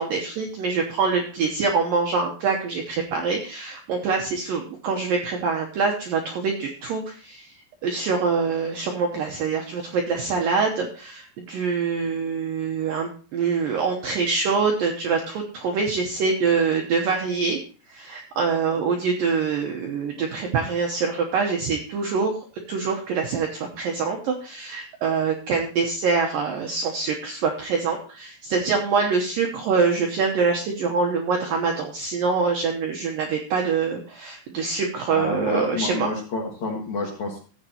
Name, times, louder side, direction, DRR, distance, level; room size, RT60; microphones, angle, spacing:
voice 1, 0.0-7.5 7.8-17.6 17.9-36.1, right 5 dB, 75° right, 2 dB, 2.0 m, -25 dB
voice 2, 35.1-37.4, left 3 dB, 55° left, -1 dB, 2.2 m, -29 dB
15.0 x 8.0 x 2.9 m, 0.39 s
omnidirectional pair, 5.3 m